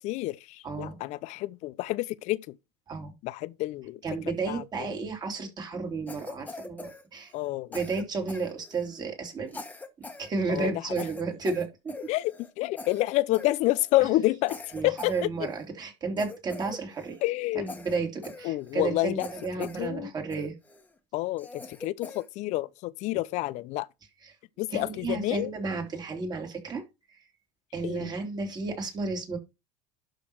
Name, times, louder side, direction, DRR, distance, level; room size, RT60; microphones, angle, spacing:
voice 1, 0.0-2.6 3.2-4.0 4.5-4.9 7.3-7.7 10.5-10.7 12.1-14.6 14.8-15.1 17.2-17.7 18.4-19.3 19.6-20.1 21.1-23.9 24.6-25.5 27.8-28.1, left 18 dB, 60° left, 0.6 m, -29 dB
voice 2, 0.6-1.0 2.9-3.1 4.0-7.3 7.7-9.6 10.2-11.9 14.7-17.2 17.5-20.5 24.2-24.3 24.7-26.8 27.7-29.4, right 4 dB, 30° right, 3.1 m, -32 dB
Cough, 6.1-7.5 7.7-9.0 9.5-10.3 10.5-10.7 11.0-12.5 12.8-13.1 13.3-14.0 14.5-15.7 16.2-17.2 17.7-18.9 19.2-19.9 20.3-20.9 21.4-22.3, left 3 dB, 10° left, 1.5 m, -43 dB
11.5 x 3.9 x 4.6 m
supercardioid pair, 105°, 14 cm